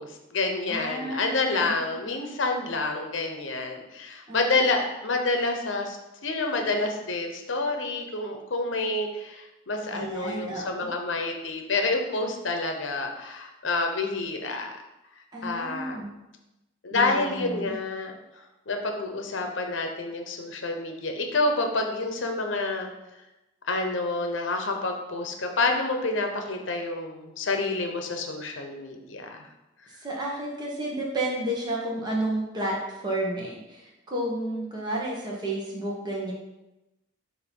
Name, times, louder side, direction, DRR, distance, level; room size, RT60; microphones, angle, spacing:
voice 1, 0.0-6.0 6.2-14.8 15.4-16.0 16.8-18.2 18.7-22.9 23.7-29.3, left 3 dB, 70° left, 4 dB, 0.9 m, -28 dB
voice 2, 0.7-2.0 4.3-4.7 9.9-10.9 15.3-16.1 16.9-17.8 30.0-36.3, right 1 dB, 20° right, -4 dB, 1.2 m, -31 dB
6.8 x 2.8 x 5.3 m, 0.98 s
head